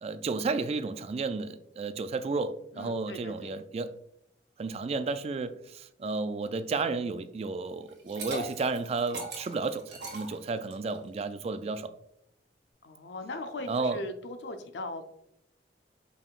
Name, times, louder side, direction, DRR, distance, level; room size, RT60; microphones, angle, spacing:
voice 1, 0.0-3.9 4.6-11.9 13.7-14.0, right 3 dB, 35° right, 0.3 m, -32 dB
voice 2, 2.7-3.5 12.8-15.0, left 2 dB, 75° left, 0.6 m, -39 dB
Liquid, 7.9-11.0, right 2 dB, 80° right, 1.7 m, -39 dB
5.4 x 3.7 x 2.4 m
head